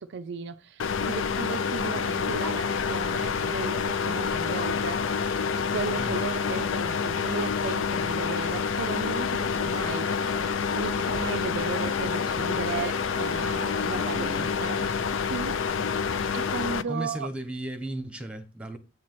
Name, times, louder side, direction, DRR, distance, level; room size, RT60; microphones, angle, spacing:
voice 1, 0.0-5.2 5.6-10.2 10.7-15.7 16.3-17.3, right 5 dB, 60° right, 0.4 m, -35 dB
sound 1, 0.8-16.8, left 6 dB, 70° left, 0.4 m, -28 dB
sound 2, 9.3-15.2, left 2 dB, 20° left, 0.5 m, -44 dB
voice 2, 16.9-18.8, right 1 dB, 5° right, 1.0 m, -35 dB
8.1 x 3.0 x 5.9 m
head